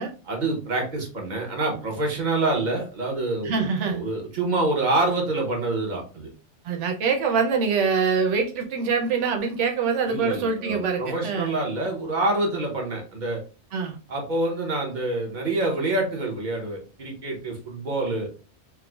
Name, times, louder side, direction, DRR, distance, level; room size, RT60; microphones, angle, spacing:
voice 1, 0.3-6.3 10.0-13.4 14.1-18.3, right 2 dB, 45° right, 0 dB, 1.0 m, -26 dB
voice 2, 3.4-4.0 6.6-11.5 13.7-14.0, right 5 dB, 85° right, 4 dB, 1.0 m, -24 dB
4.6 x 2.0 x 2.3 m, 0.36 s
omnidirectional pair, 1.2 m